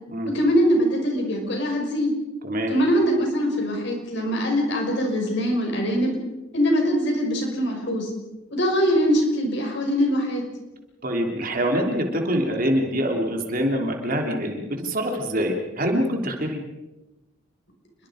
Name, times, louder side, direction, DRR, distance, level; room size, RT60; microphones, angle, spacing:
voice 1, 0.3-2.1 2.7-6.1 6.5-8.1 8.5-10.4, equal, 55° left, 2 dB, 6.0 m, -22 dB
voice 2, 11.0-16.6, equal, 40° right, 2 dB, 3.2 m, -25 dB
29.0 x 23.5 x 5.1 m, 1.0 s
head